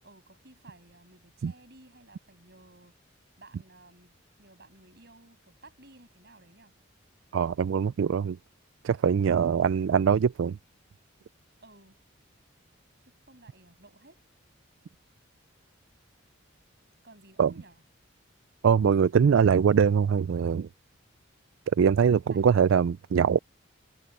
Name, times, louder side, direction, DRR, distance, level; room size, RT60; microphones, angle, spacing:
voice 1, 0.0-2.9 3.4-4.1 4.4-6.7 9.4-9.7 11.6-12.0 13.0-14.2 17.0-17.8 22.3-22.5, right 2 dB, 50° right, 7.8 m, -55 dB
voice 2, 7.3-8.4 8.8-10.6 17.4-17.5 18.6-20.7 21.8-23.4, right 7 dB, 70° right, 0.3 m, -22 dB
head